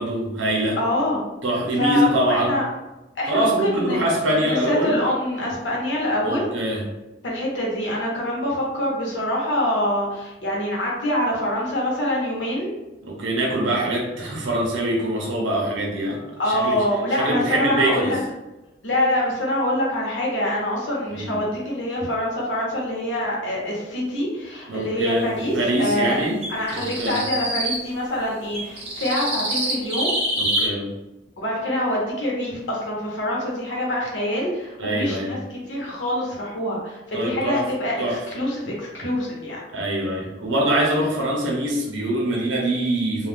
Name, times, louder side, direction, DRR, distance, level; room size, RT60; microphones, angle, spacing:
voice 1, 0.0-0.8 1.4-2.6 3.3-5.0 6.2-6.8 13.0-16.2 16.5-16.8 17.1-18.1 21.1-21.4 24.7-26.4 26.7-27.2 30.4-30.9 34.8-35.4 37.1-37.6 38.0-38.2 39.7-43.3, right 1 dB, 85° right, -2 dB, 0.7 m, -24 dB
voice 2, 0.8-1.3 1.8-2.7 3.2-4.0 4.4-6.5 7.2-12.7 16.4-18.2 18.8-26.2 26.5-30.1 31.4-39.6, left 1 dB, 80° left, -3 dB, 1.0 m, -25 dB
sound 1, 26.4-27.8 28.5-30.7, right 1 dB, 35° right, 0.8 m, -25 dB
2.4 x 2.3 x 3.4 m, 1.0 s
head